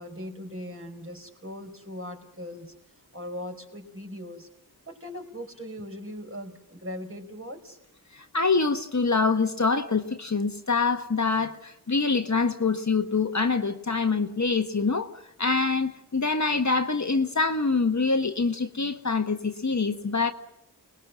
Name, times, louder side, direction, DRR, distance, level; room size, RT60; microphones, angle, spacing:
voice 1, 0.0-2.7 3.1-4.5 4.9-7.8, left 1 dB, 35° right, 5.1 m, -39 dB
voice 2, 8.3-15.1 15.4-20.3, left 4 dB, 45° left, 1.5 m, -25 dB
29.0 x 20.0 x 6.3 m
wide cardioid pair, 55°, 39 cm